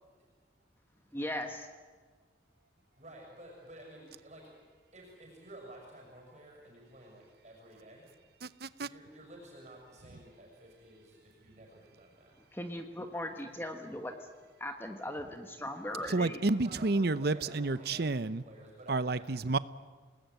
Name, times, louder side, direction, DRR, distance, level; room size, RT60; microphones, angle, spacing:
voice 1, 1.1-1.7 12.5-14.1 14.6-16.4, left 1 dB, 10° left, 5 dB, 1.4 m, -38 dB
voice 2, 3.0-4.5 4.9-8.1 8.8-12.3 16.0-16.1 16.4-19.4, right 1 dB, 35° right, -1 dB, 6.4 m, -52 dB
voice 3, 8.4-8.9 16.1-18.4 18.9-19.6, right 3 dB, 55° right, 15 dB, 0.8 m, -30 dB
29.0 x 19.5 x 9.3 m, 1.4 s
head